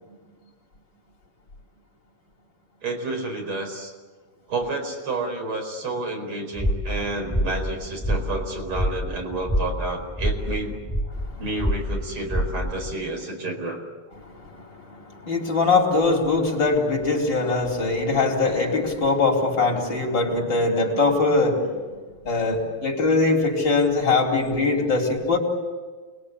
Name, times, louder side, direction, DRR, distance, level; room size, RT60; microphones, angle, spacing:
voice 1, 2.8-3.9 4.5-10.8 11.4-13.8, right 2 dB, 80° right, 2 dB, 5.6 m, -30 dB
sound 1, 6.5-12.9, equal, ahead, 1.6 m, -27 dB
voice 2, 14.3-21.8 22.2-25.4, left 3 dB, 55° left, 1 dB, 5.0 m, -22 dB
28.5 x 21.5 x 8.6 m, 1.4 s
omnidirectional pair, 2.4 m